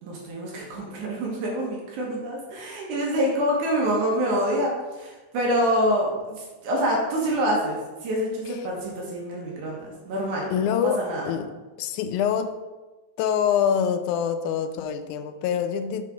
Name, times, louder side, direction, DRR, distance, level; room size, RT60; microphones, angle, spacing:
voice 1, 0.0-11.5, equal, 85° right, -2 dB, 2.7 m, -26 dB
voice 2, 10.5-11.5 11.8-12.6 13.2-16.0, left 8 dB, 90° left, 9 dB, 2.1 m, -25 dB
6.5 x 5.8 x 3.7 m, 1.2 s
omnidirectional pair, 3.4 m